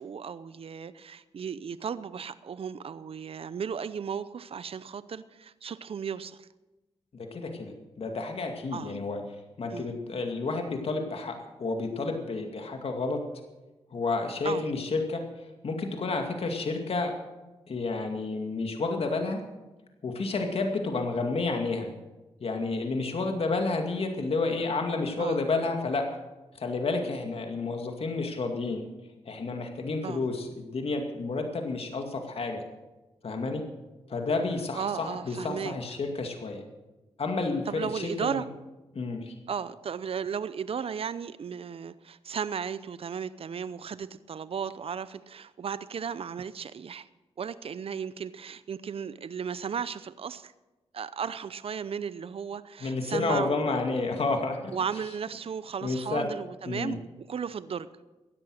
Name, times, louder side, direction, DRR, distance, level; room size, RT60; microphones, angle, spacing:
voice 1, 0.0-6.5 8.7-9.0 9.7-9.9 14.4-14.7 25.2-25.4 30.0-30.2 34.7-35.7 37.7-38.5 39.5-47.1 47.4-50.5 50.9-53.8 54.7-57.9, right 7 dB, 60° right, 0.7 m, -35 dB
voice 2, 7.1-7.7 8.0-9.2 9.6-13.2 13.9-15.2 15.6-17.1 17.7-19.4 20.0-21.9 22.4-26.0 26.6-28.8 29.2-32.6 33.2-33.6 34.1-36.6 37.2-38.4 38.9-39.3 52.8-54.7 55.8-56.3 56.7-57.0, left 3 dB, 60° left, 2.2 m, -30 dB
16.0 x 11.0 x 6.4 m
cardioid pair, 55°, 11 cm